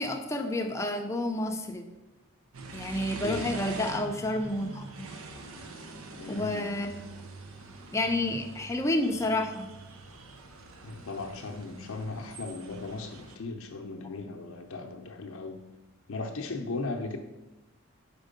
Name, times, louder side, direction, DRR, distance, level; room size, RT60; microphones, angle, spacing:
voice 1, 0.0-1.8 2.7-4.8 6.3-6.9 7.9-9.7, left 1 dB, 15° left, 4 dB, 0.5 m, -30 dB
sound 1, 2.5-13.4, right 2 dB, 75° right, 0.7 m, -44 dB
voice 2, 3.2-3.6 6.1-6.7 10.8-15.6 16.1-17.2, left 3 dB, 75° left, 3 dB, 0.6 m, -37 dB
5.2 x 4.5 x 5.1 m, 1.0 s
head